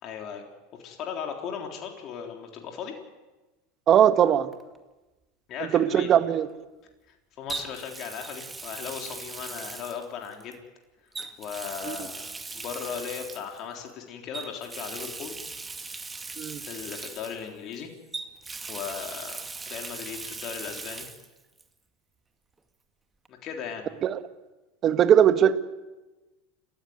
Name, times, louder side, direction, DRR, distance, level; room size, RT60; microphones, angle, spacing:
voice 1, 0.0-0.5 0.7-3.0 5.5-6.1 7.1-10.6 11.4-15.3 16.6-17.9 18.7-21.1 23.3-23.9, left 7 dB, 50° left, 2 dB, 3.7 m, -37 dB
voice 2, 3.9-4.5 5.7-6.5 11.8-12.0 16.4-16.6 24.0-24.2 24.8-25.6, right 9 dB, 40° right, 11 dB, 1.6 m, -20 dB
Water tap faucet, 4.5-4.8 7.5-10.5 11.1-13.6 14.3-17.8 18.1-21.3 21.6-21.7 23.2-23.3, right 3 dB, 15° right, 2.3 m, -39 dB
29.5 x 14.5 x 9.5 m, 1.1 s
hypercardioid pair, 90°, 0 cm